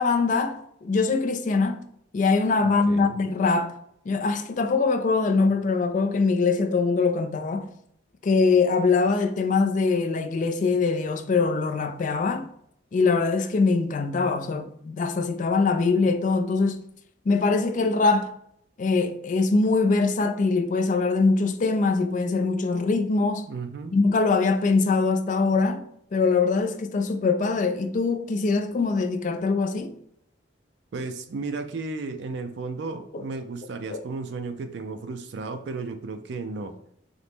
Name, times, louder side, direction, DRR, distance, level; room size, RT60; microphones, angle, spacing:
voice 1, 0.0-1.8 2.1-3.8 4.1-7.7 8.2-12.5 12.9-16.8 17.3-18.3 18.8-23.5 23.9-25.9 26.1-29.9 33.1-33.2 33.9-34.0, left 4 dB, 45° left, 0.4 m, -23 dB
voice 2, 2.6-3.2 23.5-24.0 30.9-36.7, right 3 dB, 65° right, 0.4 m, -34 dB
4.0 x 2.9 x 3.4 m
head